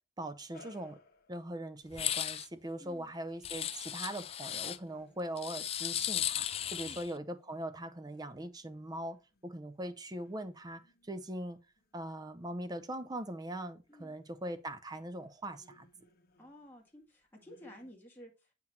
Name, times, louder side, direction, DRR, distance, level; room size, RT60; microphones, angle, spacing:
voice 1, 0.2-1.0 1.3-9.2 9.4-11.6 11.9-15.9, right 1 dB, 20° right, 0.6 m, -41 dB
sound 1, 0.5-1.6 4.8-6.6 7.0-17.0 17.4-17.9, left 3 dB, 50° left, 1.4 m, -65 dB
sound 2, 1.9-2.5 3.4-4.8 5.4-7.1, left 11 dB, 30° left, 0.3 m, -36 dB
voice 2, 2.8-3.1 6.8-7.0 13.9-14.2 16.4-18.5, equal, 10° left, 1.8 m, -53 dB
7.5 x 5.8 x 2.8 m
head